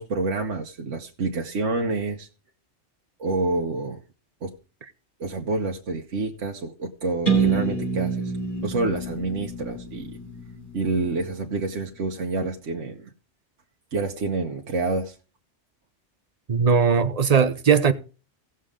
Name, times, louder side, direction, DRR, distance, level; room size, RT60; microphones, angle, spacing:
voice 1, 0.0-2.3 3.2-4.0 4.4-4.5 5.2-8.3 8.6-10.1 10.7-13.1 13.9-15.2, right 3 dB, 80° right, 1.4 m, -28 dB
sound 1, 7.3-11.1, right 4 dB, 45° left, 4.7 m, -27 dB
voice 2, 16.5-17.9, right 6 dB, 35° right, 0.8 m, -19 dB
17.5 x 6.7 x 3.7 m
omnidirectional pair, 1.2 m